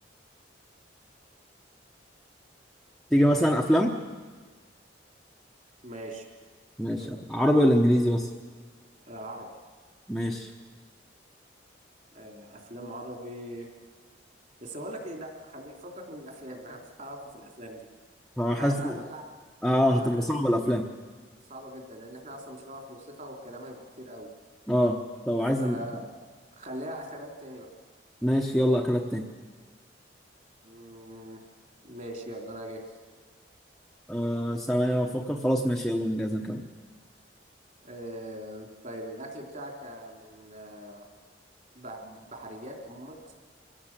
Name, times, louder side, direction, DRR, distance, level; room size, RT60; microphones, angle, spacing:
voice 1, 3.1-3.9 6.8-8.3 10.1-10.5 18.4-19.0 19.6-20.9 24.7-25.0 25.3-25.8 28.2-29.2 34.1-36.6, equal, ahead, 0 dB, 0.9 m, -24 dB
voice 2, 5.8-6.3 6.9-7.2 9.1-9.5 12.1-13.7 14.6-17.9 18.5-19.3 20.0-20.4 21.5-24.3 25.6-26.0 26.6-27.7 30.6-31.4 31.8-32.8 37.8-41.1 41.7-43.4, right 1 dB, 45° right, 2 dB, 3.6 m, -41 dB
24.5 x 16.0 x 7.5 m, 1.4 s
head